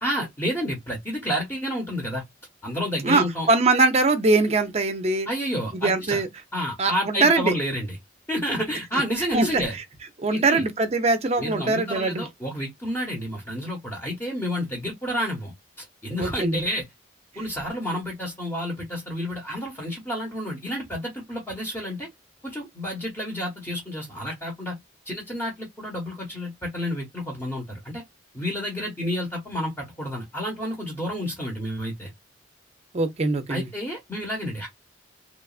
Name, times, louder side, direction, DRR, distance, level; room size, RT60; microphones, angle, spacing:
voice 1, 0.0-2.2 2.6-3.5 5.3-6.2 6.5-8.0 8.3-9.8 10.3-10.6 11.4-16.8 17.4-22.1 22.4-24.7 25.0-28.0 28.3-32.1 33.5-34.7, equal, 15° left, 0.9 m, -30 dB
voice 2, 3.0-5.3 5.7-6.3 6.8-7.5 9.3-9.6 10.2-12.2 16.2-16.6 32.9-33.7, right 3 dB, 35° right, 0.5 m, -22 dB
3.0 x 2.3 x 2.3 m
head